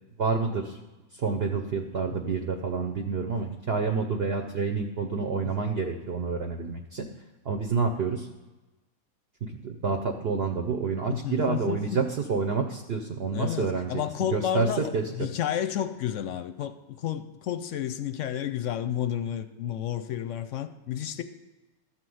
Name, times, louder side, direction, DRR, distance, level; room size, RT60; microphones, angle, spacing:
voice 1, 0.2-0.8 1.1-7.1 7.4-8.3 9.4-15.3, right 4 dB, 50° right, 0.8 m, -28 dB
voice 2, 11.1-12.1 13.3-21.2, left 10 dB, 70° left, 0.8 m, -31 dB
12.5 x 4.4 x 7.8 m
omnidirectional pair, 1.5 m